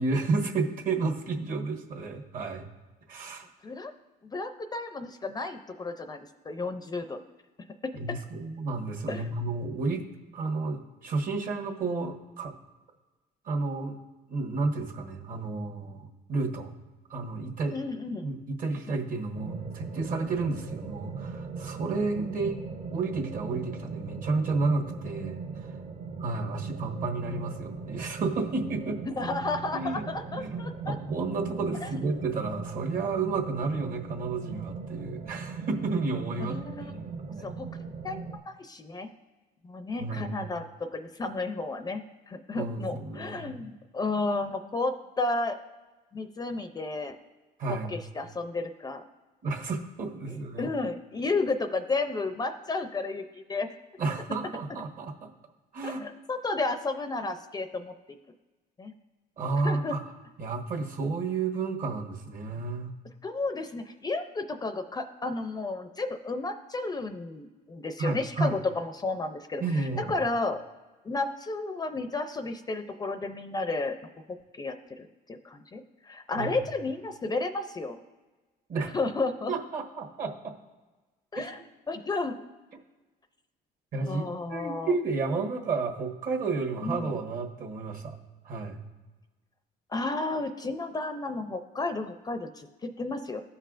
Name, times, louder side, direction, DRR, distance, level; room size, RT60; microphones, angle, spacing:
voice 1, 0.0-2.7 3.1-3.5 7.9-10.0 10.3-12.5 13.4-14.0 14.3-16.7 17.1-17.7 18.2-22.6 22.9-25.4 26.2-29.0 29.7-30.0 30.4-37.5 40.0-40.4 42.5-43.6 47.6-48.0 49.4-50.7 54.0-55.3 55.7-56.1 59.4-60.0 60.4-62.9 68.0-68.5 69.6-70.1 76.4-76.5 78.7-78.9 79.5-80.5 81.4-81.5 83.9-84.2 84.5-88.1 88.4-88.8, right 3 dB, 55° right, 2 dB, 1.4 m, -31 dB
voice 2, 4.2-7.2 7.8-7.9 9.1-9.3 17.7-18.3 29.1-31.0 31.8-31.9 36.4-36.9 37.4-37.7 38.0-38.2 38.5-39.1 39.6-45.6 46.1-47.2 47.7-49.0 50.3-53.7 55.8-57.9 58.8-58.9 59.6-60.0 63.2-70.6 71.0-74.0 74.3-78.0 78.9-79.5 81.3-81.6 81.9-82.4 83.9-84.9 86.8-87.2 89.9-92.7 93.0-93.4, left 3 dB, 25° left, 8 dB, 0.5 m, -32 dB
sound 1, 19.3-38.4, right 5 dB, 35° right, 0.6 m, -39 dB
14.5 x 5.5 x 2.5 m, 1.2 s
cardioid pair, 110°, 17 cm